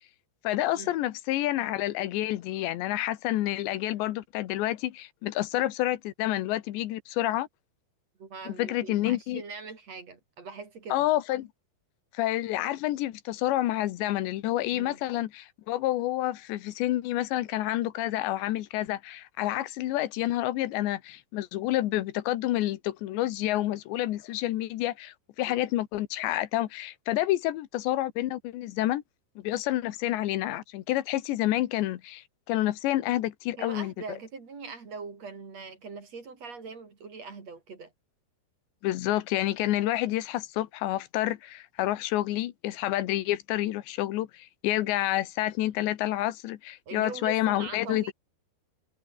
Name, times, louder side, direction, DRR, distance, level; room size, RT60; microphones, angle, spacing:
voice 1, 0.5-7.5 8.5-9.4 10.9-11.5 12.2-29.0 29.4-33.9 38.8-48.1, left 15 dB, 85° left, 3.5 m, -29 dB
voice 2, 8.2-11.1 14.7-15.0 25.5-25.6 33.6-37.9 46.9-48.1, right 4 dB, 40° right, 4.3 m, -42 dB
omnidirectional pair, 4.9 m